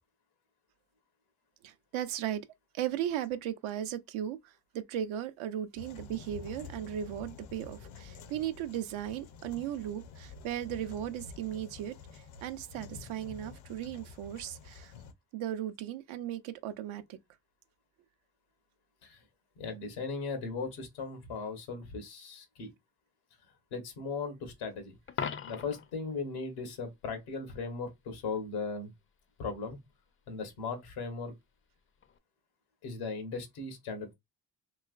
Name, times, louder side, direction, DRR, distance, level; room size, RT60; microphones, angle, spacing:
voice 1, 1.6-2.4 2.7-14.9 15.3-17.2, right 11 dB, 75° right, 0.6 m, -37 dB
sound 1, 5.8-15.1, left 5 dB, 70° left, 0.7 m, -49 dB
voice 2, 19.6-22.7 23.7-28.9 29.4-29.8 30.3-31.3 32.8-34.1, left 4 dB, 90° left, 1.1 m, -38 dB
Coin (dropping), 25.1-25.9 32.0-32.2, left 7 dB, 30° left, 0.4 m, -37 dB
3.1 x 3.0 x 2.4 m
supercardioid pair, 55°, 49 cm